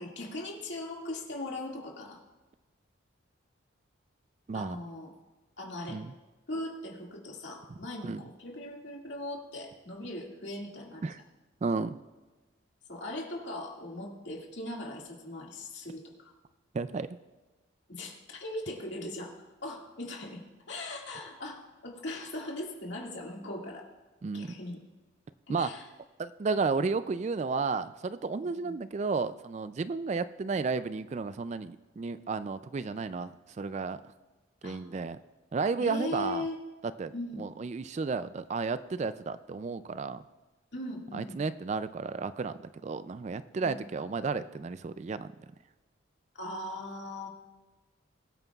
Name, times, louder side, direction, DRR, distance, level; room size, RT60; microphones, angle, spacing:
voice 1, 0.0-2.2 4.5-5.1 5.6-6.0 6.5-11.1 12.9-16.3 17.9-19.3 19.6-20.4 20.7-23.9 24.3-24.8 25.5-25.9 28.4-28.8 34.6-34.8 35.8-36.6 37.1-37.4 40.7-41.4 43.6-43.8 46.3-47.3, left 1 dB, 60° left, -1 dB, 2.1 m, -39 dB
voice 2, 11.6-12.0 16.7-17.1 24.2-24.5 25.5-25.7 26.2-34.0 34.6-35.2 35.5-36.4 37.0-40.2 41.1-42.6 42.8-45.3, right 4 dB, 35° right, 13 dB, 0.3 m, -32 dB
21.5 x 9.1 x 2.4 m, 1.2 s
head